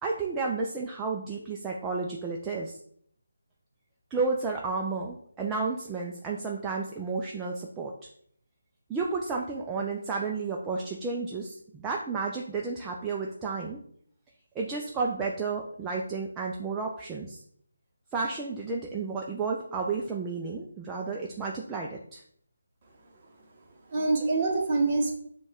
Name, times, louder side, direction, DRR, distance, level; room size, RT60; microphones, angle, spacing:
voice 1, 0.0-2.8 4.1-7.9 8.9-13.8 14.6-17.4 18.1-22.2, right 4 dB, 10° right, -1 dB, 0.4 m, -32 dB
voice 2, 23.0-25.1, right 3 dB, 30° right, 0 dB, 1.0 m, -27 dB
5.1 x 2.3 x 3.5 m, 0.63 s
figure-of-eight pair, 160°, 0 cm